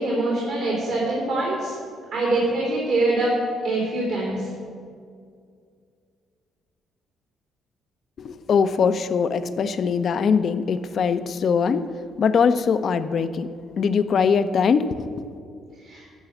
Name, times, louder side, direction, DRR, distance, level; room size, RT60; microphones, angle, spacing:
voice 1, 0.0-1.7 2.1-3.4 3.6-4.5 15.8-16.0, right 2 dB, 70° right, -4 dB, 3.0 m, -24 dB
voice 2, 8.2-11.9 12.2-13.5 13.8-15.1, left 6 dB, 55° left, 11 dB, 0.6 m, -21 dB
13.5 x 5.6 x 7.9 m, 2.2 s
hypercardioid pair, 50°, 0 cm